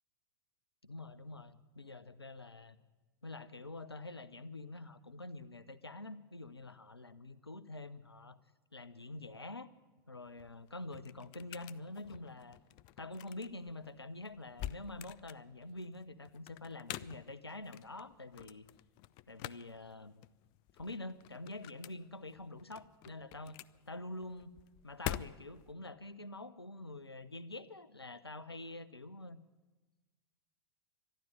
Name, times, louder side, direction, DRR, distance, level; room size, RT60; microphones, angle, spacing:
voice 1, 0.8-2.8 3.2-8.4 8.7-9.7 10.1-12.6 13.0-18.7 19.3-20.3 20.7-23.6 23.9-24.6 24.8-29.4, left 2 dB, 85° left, 16 dB, 0.7 m, -46 dB
sound 1, 10.2-25.7, left 14 dB, 35° left, 0.4 m, -48 dB
12.0 x 12.0 x 9.2 m, 1.2 s
figure-of-eight pair, 90°, 13 cm